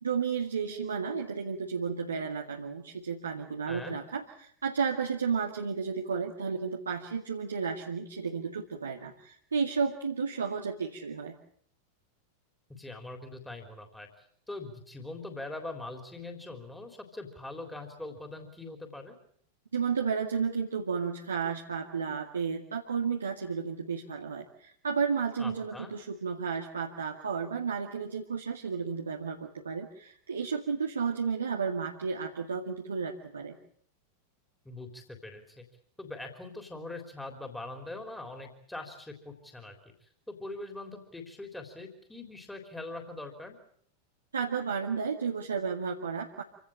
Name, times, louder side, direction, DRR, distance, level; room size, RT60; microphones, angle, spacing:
voice 1, 0.0-11.4 19.7-33.6 44.3-46.4, right 6 dB, 70° right, 1 dB, 2.1 m, -32 dB
voice 2, 3.7-4.0 12.7-19.2 25.4-25.9 34.7-35.7 36.0-39.8 40.0-43.6, left 2 dB, 5° left, 4 dB, 3.6 m, -42 dB
27.5 x 17.5 x 8.7 m, 0.64 s
figure-of-eight pair, 90°, 0 cm